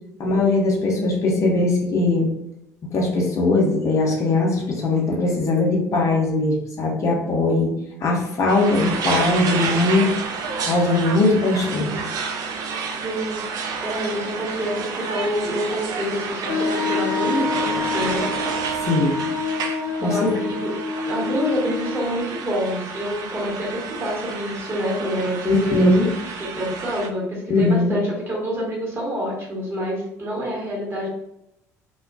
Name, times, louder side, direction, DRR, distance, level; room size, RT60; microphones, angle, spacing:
voice 1, 0.2-2.3 2.9-7.7 8.0-10.1 10.7-12.0 18.7-19.2 20.0-20.1 25.5-26.1 27.5-28.0, left 2 dB, 35° left, -2 dB, 0.7 m, -20 dB
sound 1, 8.5-27.1, right 5 dB, 50° right, 0.4 m, -30 dB
voice 2, 13.0-13.4 13.8-18.3 20.0-20.8 21.0-31.1, equal, 30° right, -3 dB, 1.2 m, -27 dB
Wind instrument woodwind instrument, 16.5-22.2, left 3 dB, 60° left, 0.9 m, -27 dB
2.3 x 2.1 x 2.4 m, 0.81 s
figure-of-eight pair, 60°, 9 cm